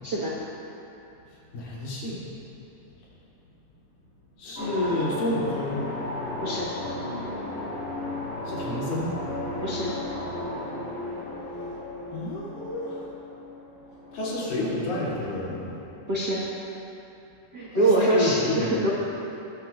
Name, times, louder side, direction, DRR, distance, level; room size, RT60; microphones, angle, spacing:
voice 1, 0.0-0.4 6.4-6.7 9.6-10.0 16.1-16.5 17.5-18.9, right 1 dB, 60° right, -6 dB, 1.0 m, -24 dB
voice 2, 1.5-2.2 4.4-5.9 8.5-9.2 12.1-13.1 14.1-15.8 17.7-18.9, left 1 dB, 80° left, -7 dB, 4.3 m, -30 dB
sound 1, 4.6-16.0, left 2 dB, 30° left, 1.9 m, -35 dB
19.0 x 12.5 x 2.4 m, 2.8 s
omnidirectional pair, 3.9 m